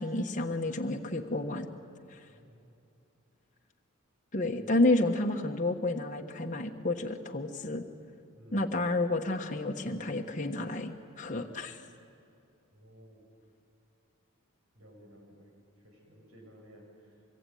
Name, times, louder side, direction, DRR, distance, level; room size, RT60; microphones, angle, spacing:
voice 1, 0.0-1.7 2.1-2.2 4.3-7.8 8.5-11.8, left 2 dB, 35° left, 2 dB, 1.3 m, -30 dB
voice 2, 2.3-2.6 4.6-4.8 8.3-8.8 12.7-13.3 14.7-17.1, equal, 75° right, 1 dB, 7.8 m, -55 dB
24.5 x 23.5 x 9.3 m, 2.6 s
head